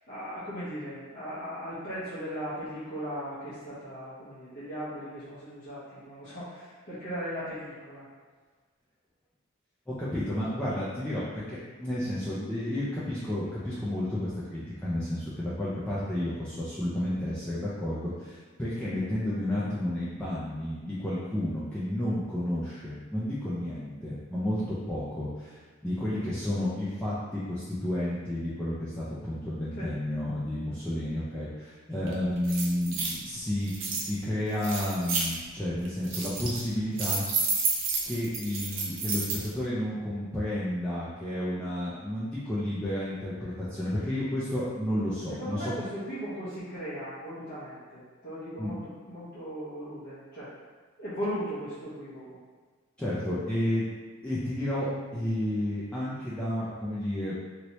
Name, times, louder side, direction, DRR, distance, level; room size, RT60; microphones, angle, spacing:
voice 1, 0.1-8.1 29.8-29.9 31.9-32.1 45.3-50.5 51.0-52.4, equal, 55° left, -14 dB, 1.0 m, -38 dB
voice 2, 9.9-37.3 38.1-45.7 48.6-48.7 53.0-53.8 54.2-54.9 55.1-57.3, left 1 dB, 5° left, -10 dB, 0.4 m, -31 dB
sound 1, 32.1-32.2 32.4-33.2 33.7-34.0 34.6-35.3 35.9-36.6 37.0-39.5, right 4 dB, 80° right, 0.6 m, -30 dB
3.1 x 2.7 x 3.0 m, 1.4 s
head